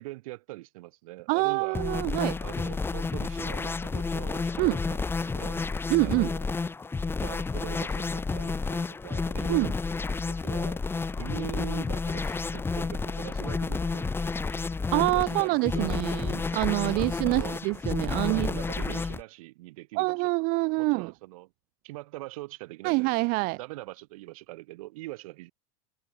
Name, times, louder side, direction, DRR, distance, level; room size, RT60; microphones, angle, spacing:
voice 1, 0.0-1.8 2.4-5.6 6.0-6.5 7.2-9.7 10.3-10.8 11.2-14.1 14.5-14.7 15.1-16.2 16.9-17.6 18.2-21.5 21.8-23.2 23.5-25.5, right 20 dB, 70° right, 2.9 m, -42 dB
voice 2, 1.3-2.4 4.6-4.8 5.9-6.3 9.5-9.7 14.9-18.5 18.8-18.9 20.0-21.1 22.8-23.6, right 27 dB, 55° right, 1.1 m, -26 dB
sound 1, 1.7-19.2, left 4 dB, 10° left, 1.0 m, -31 dB
supercardioid pair, 120°, 18 cm